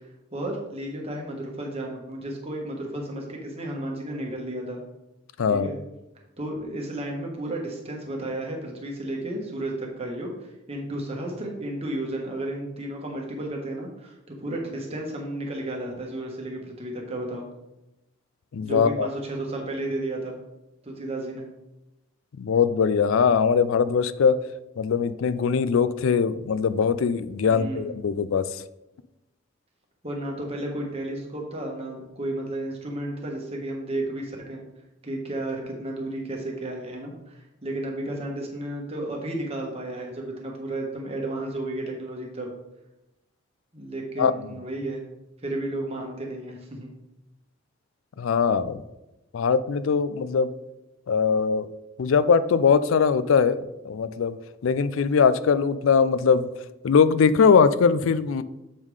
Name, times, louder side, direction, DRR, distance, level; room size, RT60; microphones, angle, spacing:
voice 1, 0.3-4.8 5.5-5.8 6.4-17.5 18.6-20.4 20.8-21.4 27.5-27.9 30.0-34.6 35.0-42.5 43.7-45.0 45.4-46.9, right 1 dB, 30° right, 0 dB, 1.2 m, -33 dB
voice 2, 5.4-5.7 18.5-19.1 22.4-24.4 24.8-28.6 44.2-44.3 48.2-48.8 49.3-50.5 51.1-51.7 52.0-54.4 54.6-56.5 56.8-58.4, left 6 dB, 75° left, 14 dB, 0.4 m, -21 dB
7.4 x 3.6 x 4.8 m, 0.95 s
head